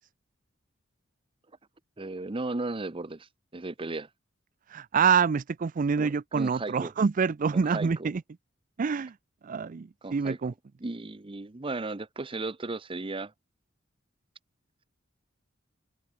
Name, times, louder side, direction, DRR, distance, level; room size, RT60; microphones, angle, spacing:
voice 1, 2.0-3.3 3.5-4.1 6.0-6.9 7.5-8.1 10.0-10.4 10.8-13.3, right 2 dB, 25° right, 0.8 m, -35 dB
voice 2, 4.7-8.2 8.8-9.2 9.4-10.5, right 6 dB, 40° right, 0.4 m, -26 dB
head